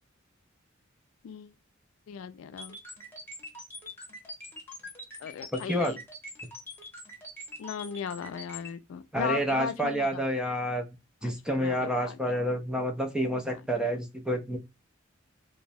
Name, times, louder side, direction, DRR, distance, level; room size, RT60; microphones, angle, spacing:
voice 1, 1.2-1.5 2.1-2.8 5.2-6.0 7.6-10.2 11.2-12.3, left 7 dB, 85° left, 0.3 m, -37 dB
sound 1, 2.6-8.7, left 1 dB, 10° left, 0.9 m, -43 dB
voice 2, 5.5-5.9 9.1-10.9 11.2-14.6, equal, 5° right, 0.4 m, -29 dB
3.0 x 2.0 x 2.6 m
head